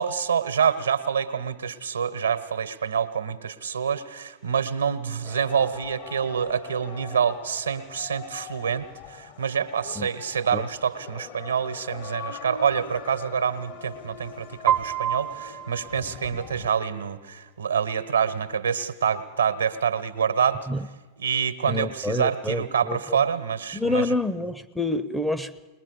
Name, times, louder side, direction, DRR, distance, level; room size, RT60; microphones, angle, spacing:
voice 1, 0.0-20.7 21.2-24.2, right 7 dB, 75° right, 1.2 m, -26 dB
sound 1, 5.2-16.7, left 9 dB, 45° left, 1.0 m, -42 dB
Piano, 14.7-16.7, right 10 dB, 40° right, 0.7 m, -28 dB
voice 2, 21.7-23.2 23.7-25.7, left 2 dB, ahead, 0.7 m, -28 dB
21.5 x 20.5 x 6.6 m
figure-of-eight pair, 90°, 0 cm